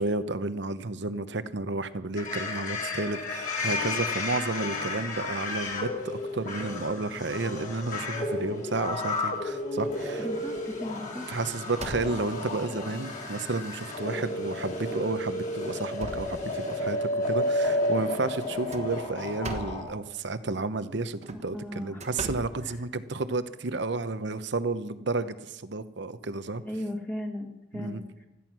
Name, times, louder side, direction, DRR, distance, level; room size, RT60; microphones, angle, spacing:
voice 1, 0.0-10.3 11.3-26.6 27.7-28.0, right 3 dB, 65° right, 13 dB, 0.9 m, -32 dB
sound 1, 2.2-19.8, left 2 dB, 45° left, 4.6 m, -32 dB
sound 2, 9.3-9.9 10.4-10.6 11.0-12.5 13.2-13.3 13.8-13.9 14.8-15.0 15.5-17.0 18.5-19.9 21.1-23.3, right 2 dB, 40° right, 1.3 m, -41 dB
voice 2, 10.2-11.4 21.3-22.0 26.6-28.1, left 1 dB, 10° left, 1 dB, 1.7 m, -36 dB
16.5 x 13.5 x 6.1 m, 0.94 s
head